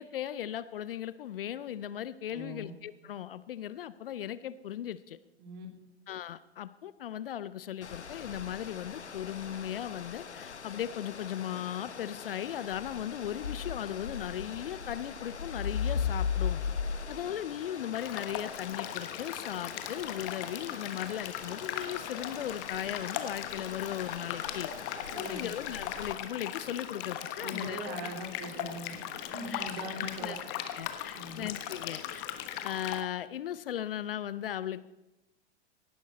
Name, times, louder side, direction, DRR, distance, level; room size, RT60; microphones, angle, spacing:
voice 1, 0.0-5.2 6.1-16.6 17.1-24.7 25.2-28.0 29.5-29.7 30.0-30.4 30.7-32.3 32.6-34.9, left 11 dB, 55° left, 16 dB, 0.6 m, -37 dB
voice 2, 2.3-2.7 5.4-5.7 25.1-25.5 27.4-29.0 29.3-30.4 31.1-31.4, right 1 dB, 35° right, 3 dB, 3.2 m, -41 dB
sound 1, 7.8-26.1, left 6 dB, 80° left, 0.9 m, -39 dB
sound 2, 17.9-33.0, left 10 dB, 30° left, 1.2 m, -39 dB
17.5 x 11.5 x 4.0 m, 0.97 s
figure-of-eight pair, 105°, 34 cm